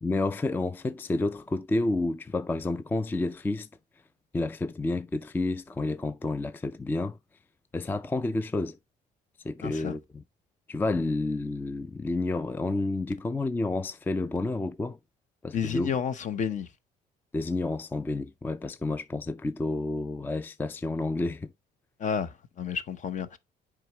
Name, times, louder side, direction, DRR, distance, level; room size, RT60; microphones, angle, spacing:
voice 1, 0.0-3.7 4.3-7.2 7.7-8.8 9.4-10.2 10.7-15.0 15.4-15.9 17.3-21.5, left 2 dB, 10° left, 0.4 m, -30 dB
voice 2, 9.6-10.0 15.5-16.7 22.0-23.4, left 7 dB, 45° left, 0.8 m, -31 dB
7.5 x 4.9 x 2.9 m
cardioid pair, 110°, 17 cm